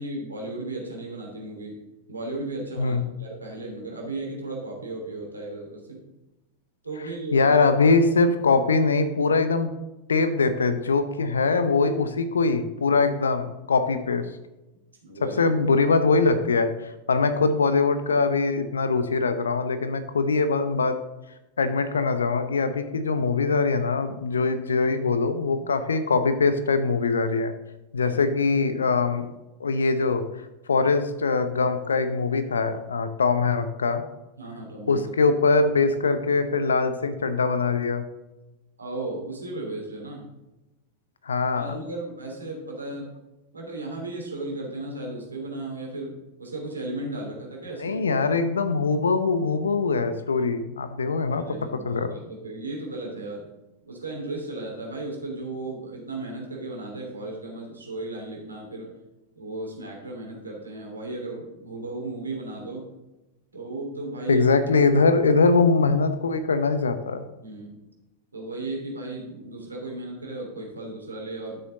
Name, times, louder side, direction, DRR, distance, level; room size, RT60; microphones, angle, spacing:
voice 1, 0.0-1.8 2.1-6.0 6.8-7.6 15.0-15.4 28.0-28.2 34.4-35.0 38.8-40.3 41.5-43.1 43.5-46.1 46.4-48.0 51.5-53.5 53.9-58.9 59.3-62.9 63.5-64.5 67.4-67.8 68.3-71.6, right 2 dB, 75° right, 0 dB, 2.9 m, -35 dB
voice 2, 7.3-9.7 10.1-14.3 15.2-21.0 21.6-27.5 27.9-29.3 29.6-30.2 30.7-34.0 34.9-38.0 41.3-41.8 47.8-51.6 51.8-52.1 64.3-67.2, left 4 dB, 70° left, 11 dB, 0.8 m, -22 dB
12.0 x 6.6 x 3.8 m, 1.0 s
figure-of-eight pair, 90°, 0 cm